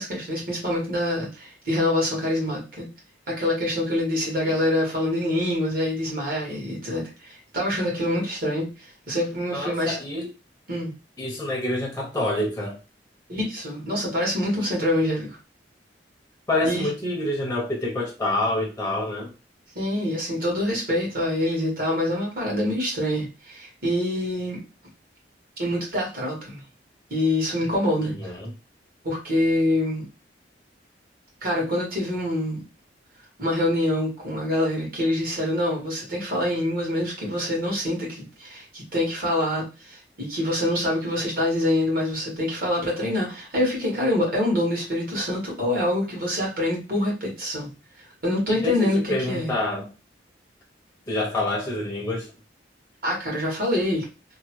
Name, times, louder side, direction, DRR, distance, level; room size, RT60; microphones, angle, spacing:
voice 1, 0.0-2.9 3.3-10.0 10.7-10.9 13.3-15.4 16.6-16.9 19.8-24.6 25.6-26.6 27.1-28.1 29.0-30.0 31.4-32.6 33.4-47.7 48.2-49.5 53.0-54.1, left 1 dB, 55° right, -3 dB, 1.6 m, -25 dB
voice 2, 9.5-10.3 11.2-12.8 16.5-19.3 28.0-28.5 48.5-49.9 51.1-52.3, left 1 dB, 15° left, -1 dB, 0.6 m, -27 dB
3.1 x 2.1 x 3.0 m, 0.29 s
head